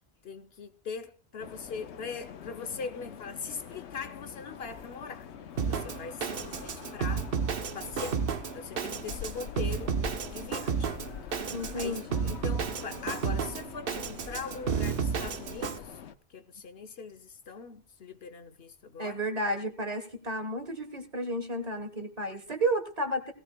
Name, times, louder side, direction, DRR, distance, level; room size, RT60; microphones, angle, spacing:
voice 1, 0.2-5.3 5.7-7.3 7.7-8.2 8.5-10.0 10.3-10.9 11.3-16.0 16.3-19.2, left 5 dB, 65° left, 1.1 m, -41 dB
sound 1, 1.4-16.2, left 8 dB, 85° left, 1.1 m, -45 dB
Drum kit, 5.6-15.8, right 6 dB, 60° right, 1.0 m, -32 dB
voice 2, 11.5-12.3 19.0-23.3, right 1 dB, 35° right, 1.5 m, -32 dB
18.0 x 17.0 x 2.3 m
omnidirectional pair, 1.1 m